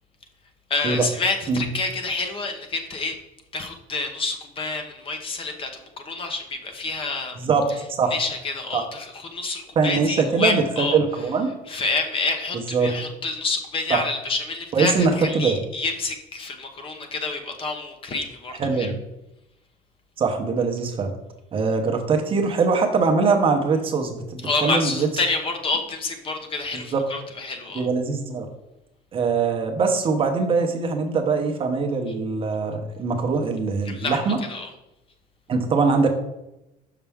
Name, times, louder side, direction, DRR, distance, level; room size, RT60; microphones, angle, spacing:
voice 1, 0.7-3.2 3.5-5.7 6.0-7.3 8.1-11.0 11.7-18.9 24.4-27.9 33.9-34.2 34.5-34.7, left 3 dB, 35° left, 5 dB, 0.8 m, -28 dB
voice 2, 7.4-7.7 8.0-8.1 8.7-8.8 9.8-11.5 12.5-13.0 13.9-14.0 14.7-15.6 18.6-19.0 20.2-21.1 21.5-25.1 26.7-27.0 27.7-28.5 29.1-34.4 35.5-36.1, right 4 dB, 35° right, 4 dB, 0.8 m, -22 dB
5.8 x 5.7 x 3.5 m, 0.90 s
cardioid pair, 145°, 16 cm